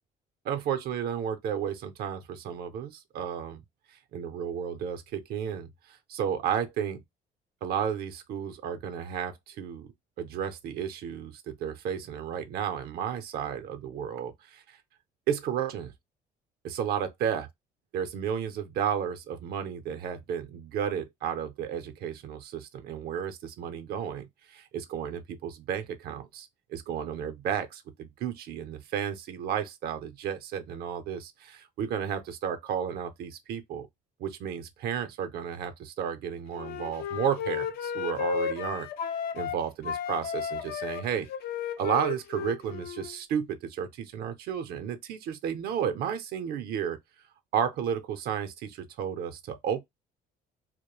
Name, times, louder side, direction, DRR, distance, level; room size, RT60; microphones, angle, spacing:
voice 1, 0.5-3.6 3.9-7.0 7.6-9.9 10.2-14.8 15.3-15.9 16.6-17.5 17.9-33.9 34.2-38.9 39.3-41.3 41.8-47.0 47.5-49.8, right 8 dB, 70° right, 0.5 m, -33 dB
Wind instrument woodwind instrument, 36.5-39.6 39.8-43.1, left 8 dB, 70° left, 0.4 m, -33 dB
2.3 x 2.0 x 2.9 m
cardioid pair, 110°, 17 cm